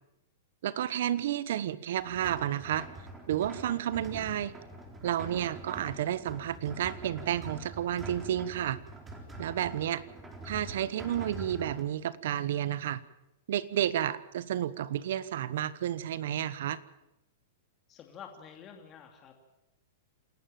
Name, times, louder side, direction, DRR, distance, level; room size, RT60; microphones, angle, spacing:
voice 1, 0.6-2.9 3.3-4.5 5.0-8.8 9.4-10.0 10.4-13.0 13.5-16.8, right 11 dB, 65° right, 18 dB, 1.1 m, -31 dB
sound 1, 2.0-11.8, right 1 dB, 15° right, 4.1 m, -45 dB
voice 2, 17.9-19.4, left 7 dB, 30° left, 3 dB, 2.7 m, -49 dB
27.5 x 11.5 x 9.0 m, 0.93 s
hypercardioid pair, 125°, 0 cm